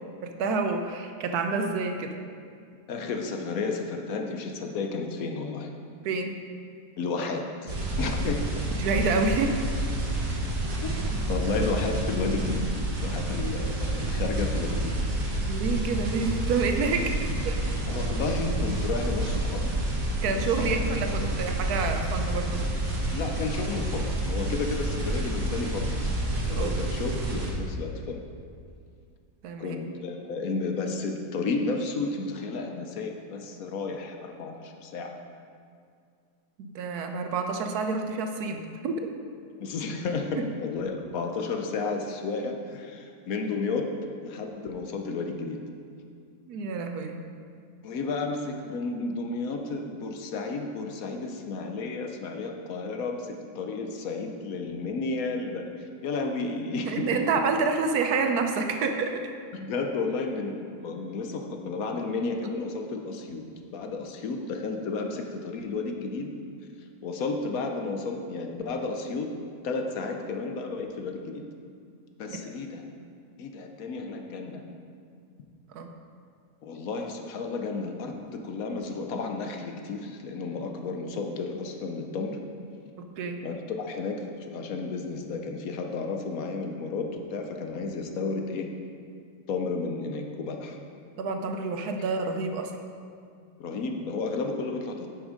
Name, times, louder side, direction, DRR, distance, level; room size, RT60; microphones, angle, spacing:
voice 1, 0.2-2.1 6.0-6.4 8.8-9.7 15.5-17.6 20.2-22.6 26.6-26.8 29.4-29.8 36.6-39.1 40.4-40.5 46.5-47.2 56.9-59.3 72.3-72.6 75.7-75.9 83.0-83.4 91.2-92.7, right 4 dB, 75° right, 5 dB, 1.2 m, -28 dB
voice 2, 2.9-5.7 7.0-8.5 10.8-12.7 13.0-14.8 15.3-15.5 17.9-19.7 20.3-20.8 21.1-21.4 23.1-26.1 26.5-28.2 29.6-35.1 39.6-44.0 44.2-45.6 47.8-57.2 59.5-63.4 63.7-66.3 67.0-69.3 69.6-71.4 72.2-72.8 73.4-74.6 76.6-82.4 83.4-88.7 89.5-90.8 93.6-95.1, left 3 dB, 65° left, 3 dB, 1.1 m, -32 dB
sound 1, 7.7-27.5, right 1 dB, 60° right, 1.8 m, -29 dB
8.2 x 6.3 x 5.1 m, 2.2 s
omnidirectional pair, 1.7 m